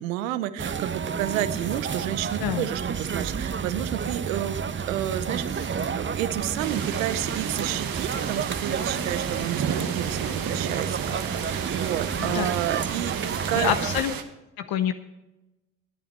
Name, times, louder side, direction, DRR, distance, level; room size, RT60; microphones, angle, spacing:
voice 1, 0.0-13.7, right 13 dB, 90° right, 14 dB, 0.7 m, -31 dB
sound 1, 0.6-14.0, right 6 dB, 30° right, 0.9 m, -30 dB
sound 2, 6.6-14.2, right 8 dB, 60° right, 1.4 m, -33 dB
voice 2, 12.2-12.5 13.5-14.1 14.6-14.9, left 10 dB, 65° left, 9 dB, 0.8 m, -26 dB
18.5 x 8.6 x 4.3 m, 1.0 s
hypercardioid pair, 50°, 39 cm